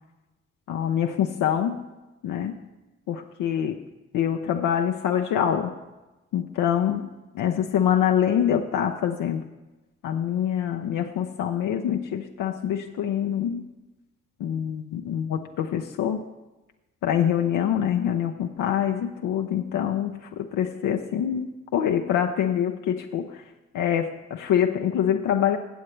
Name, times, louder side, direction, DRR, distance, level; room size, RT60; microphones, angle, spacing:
voice 1, 0.7-1.8 2.2-2.6 3.1-3.8 4.1-5.7 6.3-9.4 10.0-13.7 14.4-16.2 17.0-23.4 23.7-25.6, left 9 dB, 75° left, 4 dB, 0.6 m, -25 dB
16.0 x 7.5 x 3.2 m, 1.1 s
supercardioid pair, 45°, 32 cm